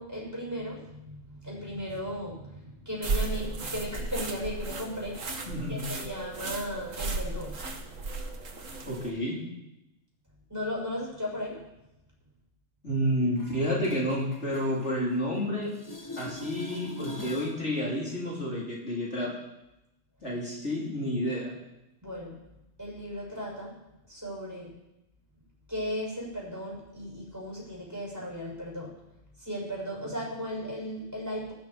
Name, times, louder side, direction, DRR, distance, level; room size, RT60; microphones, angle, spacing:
voice 1, 0.0-5.3 5.7-7.6 10.5-11.7 22.0-22.4 22.8-23.7 24.1-24.7 25.7-28.9 29.4-31.5, equal, 15° right, -3 dB, 6.6 m, -36 dB
sound 1, 3.0-9.1, right 3 dB, 85° right, 2.0 m, -35 dB
voice 2, 5.5-5.8 8.9-9.4 12.8-15.7 16.2-19.3 20.2-21.5, equal, 60° left, -5 dB, 4.3 m, -30 dB
sound 2, 13.4-15.4 15.7-17.6 23.3-23.4, left 2 dB, 15° left, 0.9 m, -43 dB
19.5 x 13.0 x 4.5 m, 0.93 s
omnidirectional pair, 1.3 m